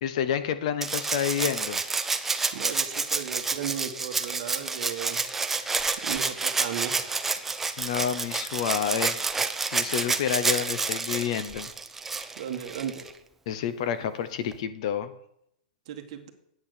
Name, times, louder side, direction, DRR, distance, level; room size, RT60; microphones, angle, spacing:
voice 1, 0.0-1.8 7.8-9.2 9.6-11.7 13.5-15.1, left 9 dB, 40° left, 12 dB, 0.8 m, -29 dB
Rattle (instrument), 0.8-13.1 14.5-14.6, right 4 dB, 5° right, 0.4 m, -29 dB
voice 2, 2.5-5.2 6.0-7.0 12.4-13.1 15.9-16.3, right 9 dB, 45° right, 6 dB, 1.5 m, -35 dB
8.8 x 8.7 x 6.7 m, 0.75 s
hypercardioid pair, 170°, 5 cm